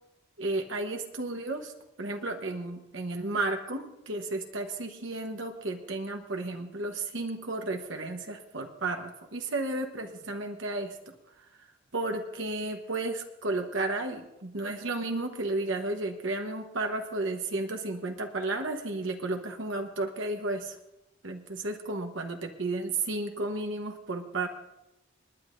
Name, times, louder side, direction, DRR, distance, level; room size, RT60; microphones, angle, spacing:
voice 1, 0.4-1.7 2.0-11.0 11.9-20.8 21.2-24.5, right 2 dB, 75° right, 4 dB, 1.1 m, -33 dB
29.5 x 9.9 x 2.6 m, 0.92 s
head